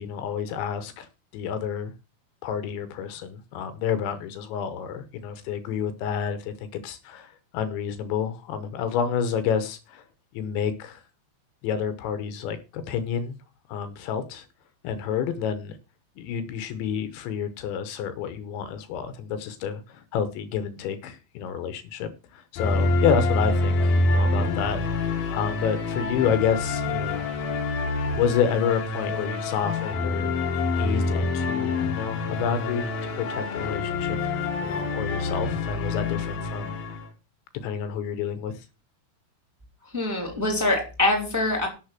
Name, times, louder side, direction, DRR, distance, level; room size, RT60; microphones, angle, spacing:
voice 1, 0.0-1.9 2.4-10.0 10.3-11.0 11.6-13.4 13.7-14.5 14.8-15.8 16.2-27.5 28.1-30.3 30.8-32.9 33.2-37.0 37.6-38.7, left 7 dB, 75° left, 3.2 m, -29 dB
sound 1, 22.6-37.1, left 3 dB, 60° left, 3.0 m, -26 dB
voice 2, 39.9-41.7, left 2 dB, 5° right, 2.6 m, -24 dB
12.0 x 6.6 x 6.0 m
omnidirectional pair, 5.5 m